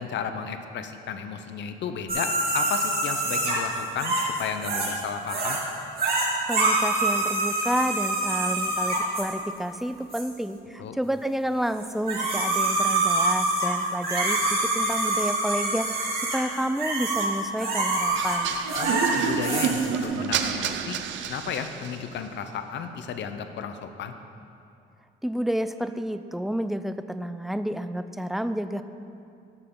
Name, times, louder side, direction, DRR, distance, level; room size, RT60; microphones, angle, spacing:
voice 1, 0.0-5.6 10.8-11.0 18.8-21.0 21.3-24.1, left 7 dB, 65° left, 8 dB, 0.6 m, -33 dB
sound 1, 2.1-5.0 5.3-5.6 6.0-9.3 10.1-10.2 11.8-20.1, right 2 dB, 50° right, 2.3 m, -26 dB
voice 2, 6.5-16.1 16.3-18.5 25.2-28.8, equal, ahead, 10 dB, 0.3 m, -30 dB
sound 2, 18.1-22.1, right 8 dB, 75° right, 0.5 m, -29 dB
11.0 x 6.8 x 3.8 m, 2.6 s
cardioid pair, 90°, 20 cm